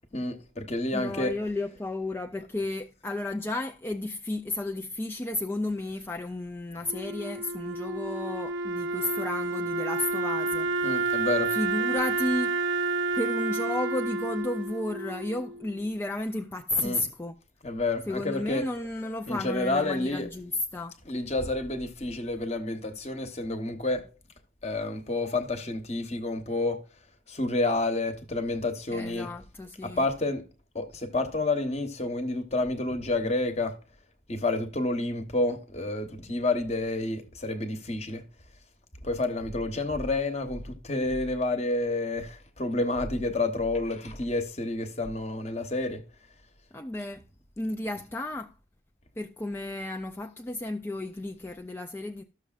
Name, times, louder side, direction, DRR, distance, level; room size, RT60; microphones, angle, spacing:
voice 1, 0.1-1.3 10.8-11.5 16.8-17.0 17.6-18.6 19.3-20.3 21.1-24.0 24.6-26.8 27.3-29.3 29.8-30.4 30.7-33.8 34.3-38.2 39.0-46.0, left 2 dB, 35° left, 1.1 m, -29 dB
voice 2, 0.9-11.2 11.5-12.6 13.1-17.4 18.1-21.0 28.9-30.1 46.7-47.2 47.6-48.5 49.2-52.2, left 2 dB, 10° left, 0.3 m, -33 dB
Wind instrument woodwind instrument, 6.9-15.9, right 3 dB, 85° right, 0.7 m, -30 dB
13.5 x 6.6 x 2.4 m
head